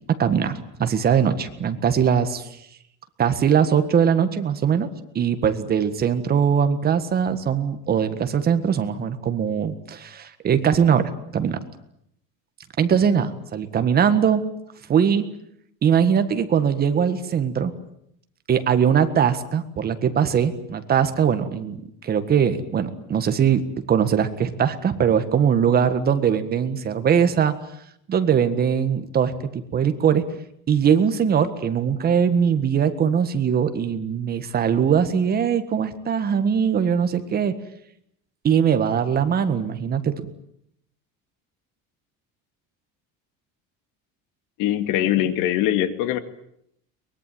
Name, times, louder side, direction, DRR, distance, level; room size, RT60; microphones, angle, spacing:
voice 1, 0.0-2.5 3.2-4.9 5.1-11.6 12.8-14.5 14.9-15.3 15.8-17.7 18.5-23.6 23.9-27.6 28.1-30.3 30.7-37.5 38.4-40.2, right 7 dB, 30° right, 10 dB, 1.7 m, -21 dB
voice 2, 44.6-46.2, left 12 dB, 75° left, 10 dB, 2.3 m, -22 dB
23.0 x 21.5 x 9.2 m, 0.75 s
cardioid pair, 175°, 33 cm